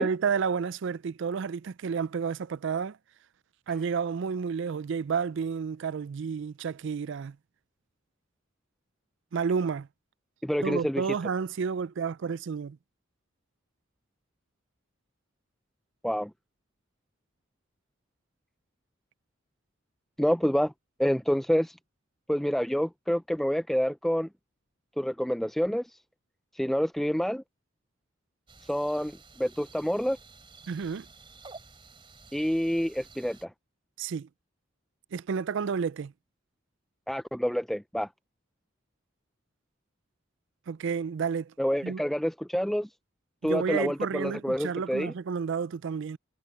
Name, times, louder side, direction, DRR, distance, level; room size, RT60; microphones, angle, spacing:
voice 1, 0.0-3.0 3.7-7.4 9.3-9.9 10.6-12.8 30.7-31.1 34.0-34.3 35.1-36.1 40.7-41.5 41.8-42.0 43.4-46.2, right 6 dB, 60° right, 0.4 m, -31 dB
voice 2, 10.4-11.1 16.0-16.3 20.2-20.7 21.0-21.8 22.3-24.3 25.0-25.9 26.5-27.4 28.6-30.2 32.3-33.5 37.1-38.1 41.6-42.9 43.4-45.1, equal, ahead, 0.4 m, -28 dB
sound 1, 28.5-33.4, right 4 dB, 25° right, 3.1 m, -52 dB
head